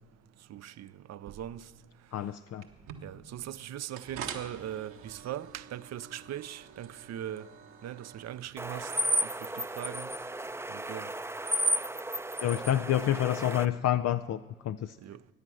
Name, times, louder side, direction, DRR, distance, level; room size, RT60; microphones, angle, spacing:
voice 1, 0.5-1.7 3.0-7.4 7.8-8.9 9.6-10.1 10.7-11.1 15.0-15.2, right 11 dB, 55° right, 0.7 m, -40 dB
voice 2, 2.1-2.7 12.4-14.4 14.6-15.0, left 11 dB, 55° left, 0.6 m, -28 dB
sound 1, 2.6-10.5, right 7 dB, 75° right, 1.5 m, -47 dB
sound 2, 8.6-13.7, right 1 dB, 10° right, 0.6 m, -33 dB
22.5 x 9.6 x 6.3 m
hypercardioid pair, 50°, 31 cm